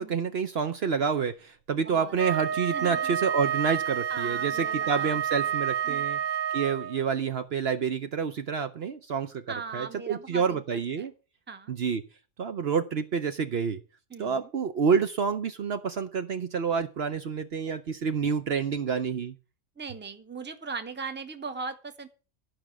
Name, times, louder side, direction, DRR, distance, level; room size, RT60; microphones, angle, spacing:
voice 1, 0.0-6.2 6.5-9.4 9.7-11.1 11.7-12.0 12.4-13.8 14.2-19.3, right 6 dB, 55° right, 8 dB, 0.9 m, -28 dB
Wind instrument woodwind instrument, 2.2-7.0, right 9 dB, 85° right, 1.3 m, -29 dB
voice 2, 2.7-3.1 4.1-5.2 5.8-6.1 9.5-10.6 11.0-11.1 11.5-11.7 14.1-14.5 19.8-22.1, right 4 dB, 10° right, 8 dB, 0.8 m, -39 dB
12.0 x 5.2 x 7.2 m, 0.34 s
omnidirectional pair, 1.3 m